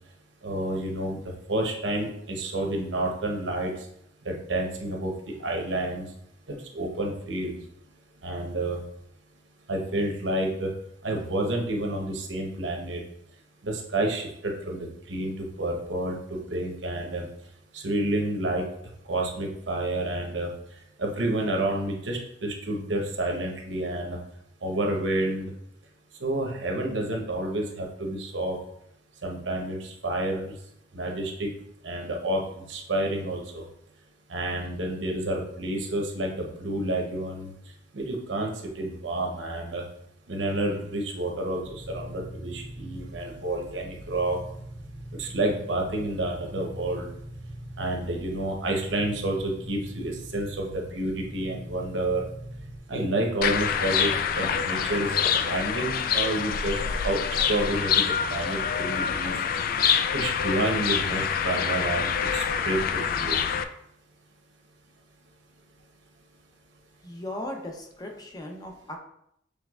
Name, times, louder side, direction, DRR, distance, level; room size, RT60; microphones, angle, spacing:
voice 1, 0.4-1.2 1.5-3.7 4.2-5.1 5.4-6.1 6.5-7.6 8.2-8.8 9.7-10.7 11.0-13.0 13.6-14.8 15.1-17.3 17.7-18.6 19.1-20.5 21.0-24.2 24.6-25.5 26.2-28.6 29.2-30.5 30.9-31.5 31.8-32.4 32.7-33.6 34.3-37.5 37.9-39.8 40.3-44.4 45.2-47.1 47.8-52.2 52.9-59.3 60.1-62.8 63.1-63.4, right 1 dB, 85° right, 1 dB, 0.9 m, -29 dB
sound 1, 41.6-52.8, right 1 dB, 90° left, 1.1 m, -42 dB
sound 2, 53.4-63.6, left 7 dB, 50° left, 0.3 m, -26 dB
voice 2, 67.0-69.0, left 1 dB, 20° left, 1 dB, 0.7 m, -37 dB
6.5 x 3.4 x 2.4 m, 0.74 s
head